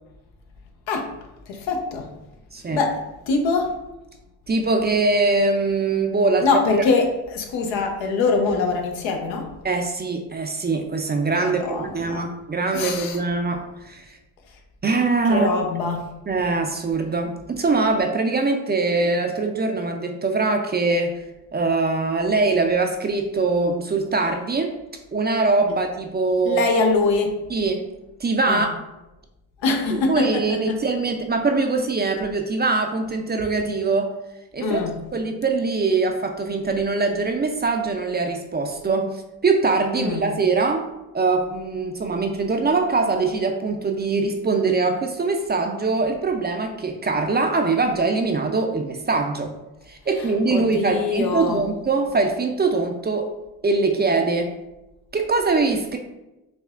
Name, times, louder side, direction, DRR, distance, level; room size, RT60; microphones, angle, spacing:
voice 1, 1.5-2.1 2.7-3.0 3.3-3.7 6.4-9.5 11.4-12.2 12.7-13.2 15.3-16.1 26.5-27.3 28.5-28.7 29.6-30.8 34.6-35.0 39.9-40.3 50.5-51.6, left 4 dB, 80° left, 3 dB, 0.7 m, -23 dB
voice 2, 4.5-6.5 9.6-14.0 14.8-15.5 16.3-21.2 21.5-24.7 25.1-26.7 27.5-27.8 28.2-28.7 29.9-34.1 34.5-34.8 35.1-39.1 39.4-40.9 41.1-49.5 49.9-53.3 53.6-54.5 55.1-56.0, right 3 dB, 25° right, 4 dB, 0.4 m, -22 dB
5.7 x 2.1 x 2.4 m, 0.98 s
supercardioid pair, 50°, 45 cm